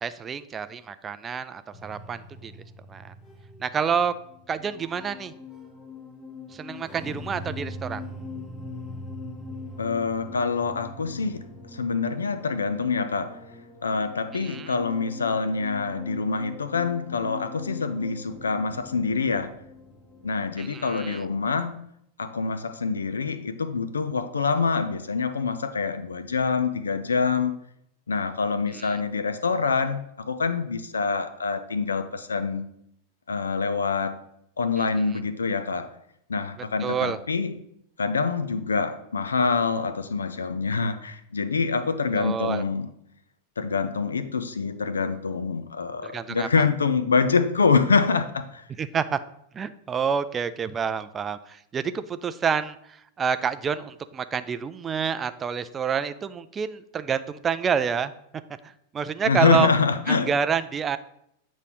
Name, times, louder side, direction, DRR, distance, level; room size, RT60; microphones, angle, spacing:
voice 1, 0.0-2.5 2.9-3.1 3.6-4.2 4.5-5.3 6.5-8.0 14.3-14.7 20.6-21.2 28.7-29.0 36.8-37.2 42.1-42.6 46.0-46.7 48.8-49.2 49.5-58.1 58.6-59.7 60.1-61.0, right 7 dB, 20° right, 0.3 m, -28 dB
sound 1, 1.7-20.6, left 2 dB, 15° left, 1.1 m, -42 dB
voice 2, 9.8-13.4 13.8-19.6 20.2-21.8 22.2-27.6 28.1-32.7 33.3-34.2 34.6-35.9 36.3-37.6 38.0-42.9 43.6-48.6 59.2-60.3, left 5 dB, 70° left, 0.5 m, -25 dB
8.1 x 3.1 x 5.3 m
figure-of-eight pair, 90°, 0 cm